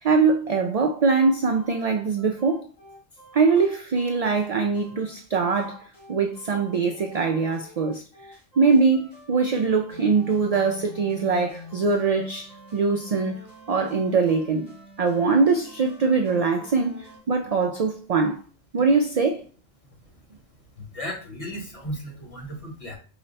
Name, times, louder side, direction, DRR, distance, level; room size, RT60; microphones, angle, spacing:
voice 1, 0.0-2.7 3.3-8.0 8.6-13.4 13.7-14.7 15.0-18.4 18.7-19.4, right 4 dB, 55° right, 0.4 m, -22 dB
sound 1, 1.6-17.2, left 2 dB, 70° left, 2.4 m, -47 dB
voice 2, 20.9-23.0, equal, 35° left, 1.0 m, -35 dB
4.9 x 2.1 x 3.9 m
omnidirectional pair, 1.0 m